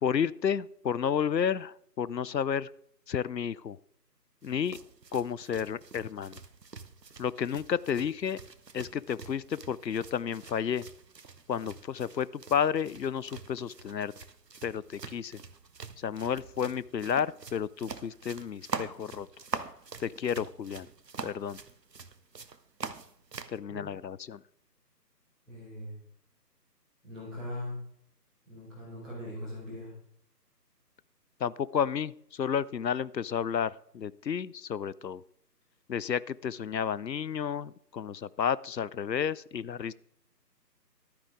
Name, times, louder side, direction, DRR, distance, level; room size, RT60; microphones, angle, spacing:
voice 1, 0.0-2.7 3.1-3.8 4.4-4.8 5.1-6.4 7.2-8.4 8.7-10.8 11.5-14.1 14.6-15.4 16.0-19.3 20.0-20.9 21.2-21.6 23.5-24.4 31.4-35.2 35.9-39.9, left 8 dB, 80° left, 21 dB, 0.6 m, -31 dB
sound 1, 4.4-23.6, right 4 dB, 75° right, 1.0 m, -45 dB
voice 2, 25.5-25.9 27.0-27.8 28.4-29.9, left 1 dB, ahead, -16 dB, 1.4 m, -40 dB
12.0 x 9.8 x 3.7 m, 0.69 s
figure-of-eight pair, 155°, 50 cm